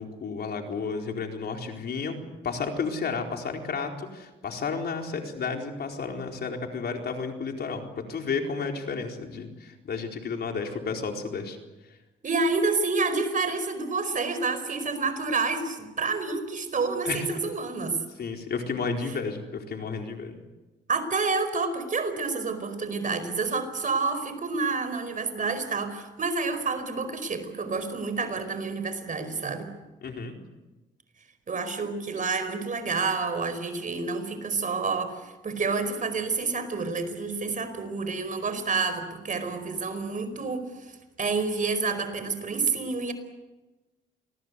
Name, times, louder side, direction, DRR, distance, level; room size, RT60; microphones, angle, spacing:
voice 1, 0.0-2.2 2.4-11.6 17.0-17.3 18.2-20.3 30.0-30.4, left 5 dB, 55° left, 3 dB, 4.3 m, -32 dB
voice 2, 12.2-18.0 20.9-29.7 31.5-43.1, right 4 dB, 40° right, 10 dB, 4.9 m, -29 dB
28.0 x 20.5 x 8.3 m, 1.1 s
cardioid pair, 90°, 20 cm